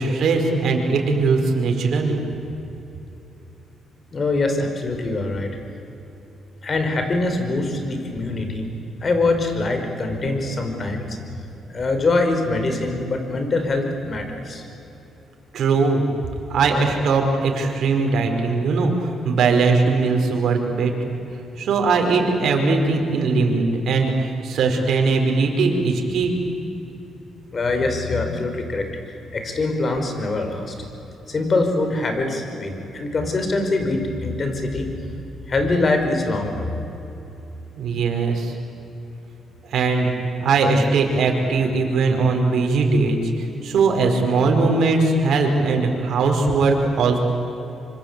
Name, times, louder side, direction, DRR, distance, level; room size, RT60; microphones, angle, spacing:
voice 1, 0.0-2.2 15.5-16.0 16.5-21.2 21.6-26.4 37.8-38.5 39.7-40.1 40.4-47.2, right 4 dB, 70° right, 2 dB, 5.0 m, -20 dB
voice 2, 4.1-5.6 6.6-8.7 9.0-11.2 11.7-14.6 27.5-30.7 31.3-34.9 35.5-36.8, left 2 dB, 40° left, 5 dB, 5.2 m, -23 dB
25.5 x 25.5 x 8.3 m, 2.9 s
cardioid pair, 90°, 0 cm